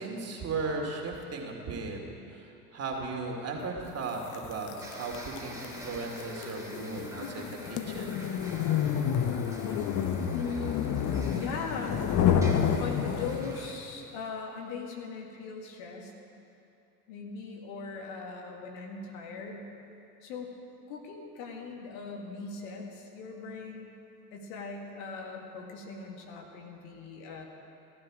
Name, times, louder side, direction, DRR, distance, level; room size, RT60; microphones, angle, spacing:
voice 1, 0.0-2.0 2.3-8.2, right 3 dB, 35° right, 0 dB, 2.7 m, -36 dB
sound 1, 4.3-13.7, left 8 dB, 40° left, 0.9 m, -29 dB
sound 2, 4.8-13.7, right 1 dB, 5° right, 2.6 m, -47 dB
voice 2, 10.3-12.0 12.8-16.1 17.1-19.7 20.2-20.5 20.9-24.0 24.3-27.4, left 4 dB, 65° left, 1 dB, 2.0 m, -40 dB
16.0 x 12.5 x 5.0 m, 2.7 s
hypercardioid pair, 70°, 45 cm